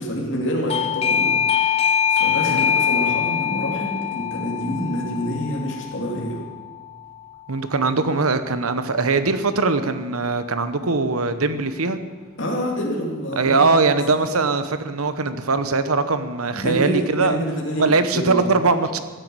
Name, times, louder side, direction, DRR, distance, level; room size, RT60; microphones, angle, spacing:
voice 1, 0.0-6.4 12.4-14.0 14.3-14.4 16.5-18.7, equal, 55° left, -2 dB, 2.8 m, -27 dB
Doorbell, 0.7-7.2, left 8 dB, 25° left, 0.3 m, -23 dB
voice 2, 7.5-12.0 13.4-17.4 17.8-19.0, right 3 dB, 80° right, 11 dB, 1.1 m, -21 dB
15.5 x 9.6 x 7.9 m, 1.4 s
head